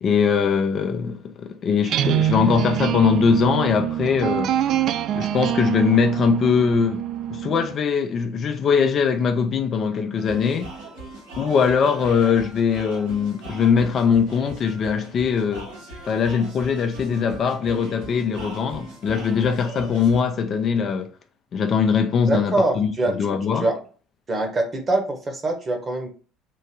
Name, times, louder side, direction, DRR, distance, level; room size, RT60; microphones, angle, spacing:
voice 1, 0.0-4.6 5.2-7.0 7.3-10.7 11.4-15.7 16.1-21.1 21.5-23.7, left 6 dB, 45° left, 0.5 m, -21 dB
sound 1, 1.8-7.8, right 11 dB, 50° right, 0.3 m, -25 dB
sound 2, 10.2-20.2, right 2 dB, 85° right, 1.9 m, -40 dB
voice 2, 22.3-23.3 23.6-23.8 24.3-26.1, right 2 dB, 30° right, 1.3 m, -24 dB
3.8 x 2.5 x 4.7 m
hypercardioid pair, 60°, 0 cm